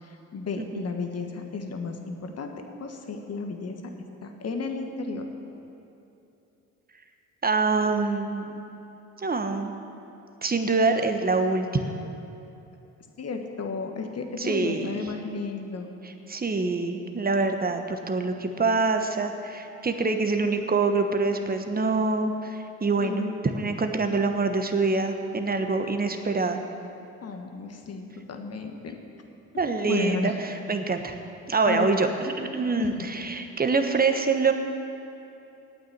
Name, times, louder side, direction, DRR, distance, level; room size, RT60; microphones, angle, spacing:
voice 1, 0.3-2.5 2.8-3.8 4.2-5.3 13.2-15.9 23.0-23.4 27.2-29.0 29.9-30.4 31.6-31.9 32.8-33.1, left 4 dB, 45° left, 4 dB, 1.5 m, -33 dB
voice 2, 7.4-8.6 9.2-9.7 10.4-11.7 14.4-15.0 16.0-26.6 29.6-31.1 31.5-34.5, right 3 dB, 25° right, 6 dB, 1.2 m, -25 dB
9.0 x 8.8 x 8.2 m, 2.9 s
hypercardioid pair, 55°, 36 cm